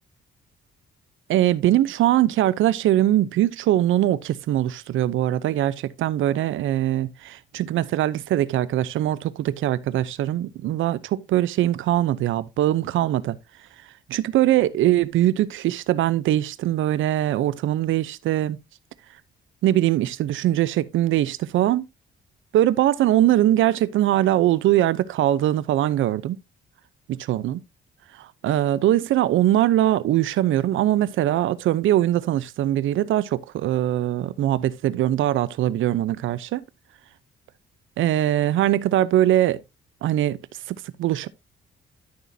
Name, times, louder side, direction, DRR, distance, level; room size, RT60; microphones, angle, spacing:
voice 1, 1.3-13.4 14.1-18.6 19.6-21.9 22.5-26.4 27.1-27.6 28.2-36.6 38.0-39.6 40.0-40.4 40.7-41.3, right 13 dB, 80° right, 0.8 m, -22 dB
12.5 x 6.4 x 2.8 m
cardioid pair, 90°, 20 cm